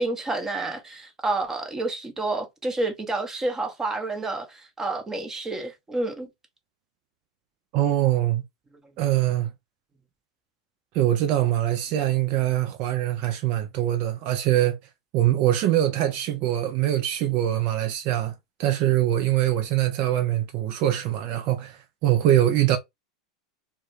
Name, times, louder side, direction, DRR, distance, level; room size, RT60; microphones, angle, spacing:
voice 1, 0.0-6.3, right 2 dB, 15° right, 0.8 m, -29 dB
voice 2, 7.7-8.4 9.0-9.5 10.9-14.8 15.1-18.3 18.6-22.8, right 13 dB, 50° right, 0.5 m, -23 dB
2.3 x 2.2 x 2.9 m
hypercardioid pair, 95°, 3 cm